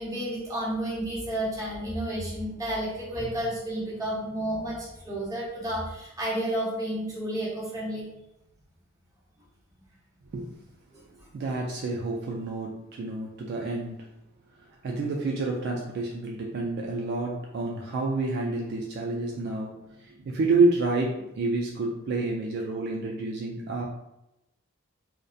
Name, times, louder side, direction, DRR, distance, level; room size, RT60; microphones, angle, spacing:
voice 1, 0.0-8.0 10.9-11.0, right 1 dB, 15° right, -7 dB, 0.8 m, -31 dB
voice 2, 11.3-14.1 14.8-23.9, right 3 dB, 55° right, -1 dB, 0.3 m, -29 dB
2.6 x 2.1 x 2.3 m, 0.88 s
head